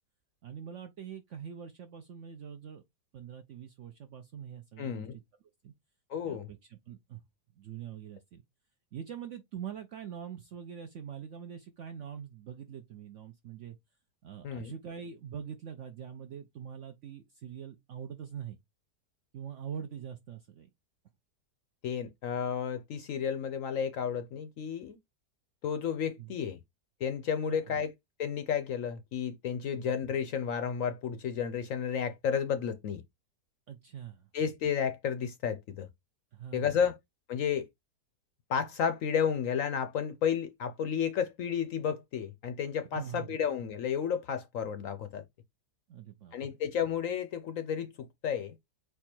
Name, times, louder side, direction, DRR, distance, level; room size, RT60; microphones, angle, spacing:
voice 1, 0.4-2.8 3.1-5.2 5.6-5.7 6.2-7.2 7.6-8.4 8.9-13.8 14.2-18.6 19.3-20.7 26.2-26.3 27.4-27.8 29.7-29.9 33.7-34.3 36.3-36.6 42.9-43.4 45.9-46.4, right 8 dB, 70° right, 0.7 m, -44 dB
voice 2, 4.8-5.2 6.1-6.5 14.4-14.7 21.8-25.0 25.6-26.6 27.0-27.9 28.2-33.0 34.3-35.9 36.5-37.0 37.3-37.7 38.5-45.2 46.3-48.6, left 7 dB, 70° left, 0.8 m, -32 dB
4.5 x 2.4 x 4.3 m
omnidirectional pair, 1.8 m